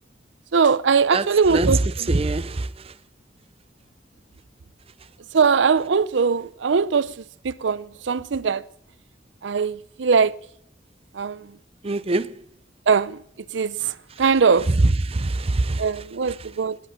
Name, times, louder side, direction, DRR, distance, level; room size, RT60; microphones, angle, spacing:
voice 1, 0.5-2.1 5.3-7.1 7.4-8.6 9.4-10.3 11.2-11.4 12.9-13.2 13.5-13.9 14.2-14.7 15.8-16.8, right 5 dB, 80° right, 0.5 m, -21 dB
voice 2, 1.1-1.8 2.1-2.7 11.8-12.4 15.1-15.8, right 2 dB, 30° right, 0.6 m, -23 dB
17.0 x 11.0 x 7.6 m
head